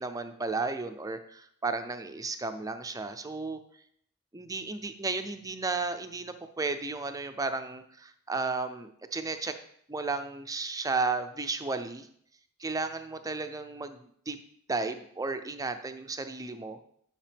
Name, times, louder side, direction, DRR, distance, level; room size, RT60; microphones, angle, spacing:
voice 1, 0.0-3.6 4.3-9.6 9.9-12.1 12.6-14.4 14.7-16.8, right 3 dB, 15° right, 8 dB, 0.5 m, -33 dB
10.5 x 5.7 x 3.4 m, 0.67 s
head